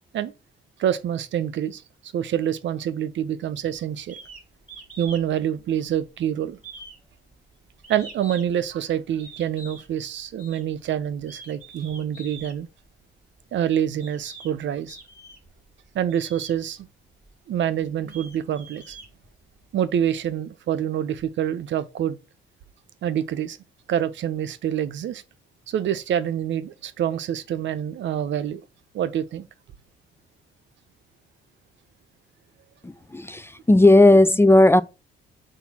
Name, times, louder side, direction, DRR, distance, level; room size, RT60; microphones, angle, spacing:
voice 1, 0.8-4.2 5.0-6.6 7.9-12.7 13.5-15.0 15.9-16.9 17.5-19.0 19.7-22.2 23.0-23.6 23.9-25.2 25.7-28.6 28.9-29.5, right 10 dB, 70° right, 0.8 m, -26 dB
sound 1, 4.1-4.4 4.7-5.3 5.6-6.2 6.6-8.6 9.2-9.9 10.4-10.6 11.2-12.6 13.4-13.5 14.0-14.5 14.9-15.5 16.1-16.6 17.2-17.3 17.8-19.6, right 3 dB, 5° right, 4.0 m, -44 dB
voice 2, 32.8-34.8, left 2 dB, 10° left, 0.4 m, -15 dB
8.1 x 2.8 x 5.9 m
cardioid pair, 90°, 20 cm